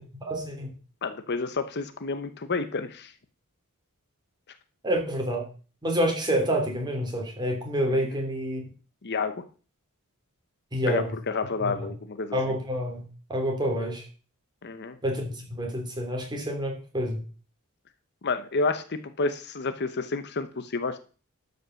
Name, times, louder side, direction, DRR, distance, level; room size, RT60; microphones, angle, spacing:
voice 1, 0.2-0.7 4.8-5.5 5.8-8.6 10.7-11.1 12.3-13.0 13.3-14.0 15.0-17.2, equal, 20° right, 1 dB, 3.0 m, -28 dB
voice 2, 1.0-3.1 7.9-8.2 9.0-9.5 10.9-12.4 14.6-15.0 18.2-21.0, left 4 dB, 50° left, 10 dB, 0.8 m, -30 dB
12.5 x 5.4 x 6.4 m, 0.38 s
head